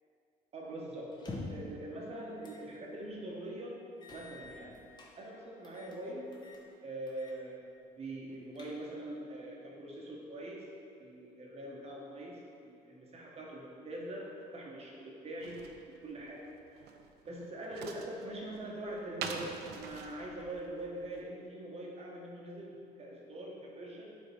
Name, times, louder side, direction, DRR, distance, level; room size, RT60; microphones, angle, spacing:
voice 1, 0.5-3.8 4.1-4.8 5.2-6.3 6.8-7.6 8.0-10.7 11.0-16.4 16.7-16.8 17.3-24.2, right 1 dB, 40° right, -3 dB, 1.0 m, -43 dB
sound 1, 1.1-1.7 2.4-2.7 3.1-3.2 4.0-5.1 5.6-6.0 6.3-6.6 7.1-7.4 7.7-7.8 8.3-9.1, left 3 dB, 25° left, 0.9 m, -47 dB
sound 2, 15.4-21.2, right 6 dB, 75° right, 0.5 m, -45 dB
6.8 x 3.6 x 4.2 m, 2.5 s
cardioid pair, 110°, 17 cm